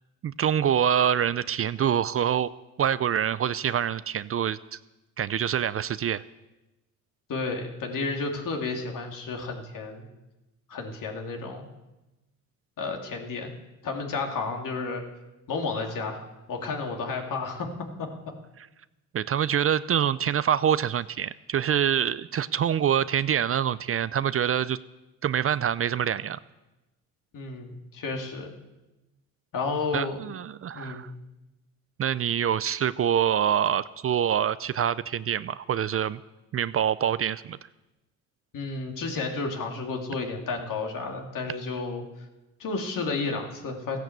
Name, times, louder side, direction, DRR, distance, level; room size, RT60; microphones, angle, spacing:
voice 1, 0.2-2.5 2.8-4.8 5.2-6.2 19.1-24.8 25.2-26.4 29.9-31.1 32.0-36.2 36.5-37.6, right 9 dB, 40° right, 16 dB, 0.5 m, -25 dB
voice 2, 7.3-10.1 10.7-11.7 12.8-13.5 13.8-15.0 15.5-17.7 18.0-18.1 27.3-28.5 29.5-30.2 30.7-31.1 38.5-42.0 42.6-44.0, left 4 dB, 60° left, 2 dB, 2.7 m, -32 dB
15.0 x 10.5 x 8.0 m, 1.0 s
cardioid pair, 85°, 36 cm